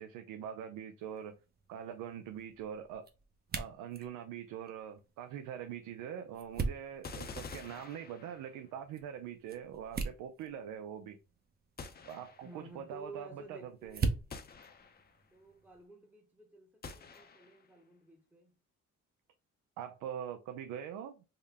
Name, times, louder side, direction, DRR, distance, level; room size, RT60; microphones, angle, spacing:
voice 1, 0.0-1.3 1.7-3.1 3.6-11.2 12.1-14.0 19.8-21.2, right 9 dB, 90° right, 0.5 m, -43 dB
sound 1, 1.0-15.9, right 4 dB, 30° right, 0.6 m, -43 dB
sound 2, 7.0-8.7 11.8-12.7 14.3-15.2 16.8-17.7, left 4 dB, 30° left, 0.6 m, -48 dB
voice 2, 12.4-14.3 15.3-18.6, right 3 dB, 5° right, 0.8 m, -53 dB
3.7 x 2.1 x 3.4 m
cardioid pair, 90°, 30 cm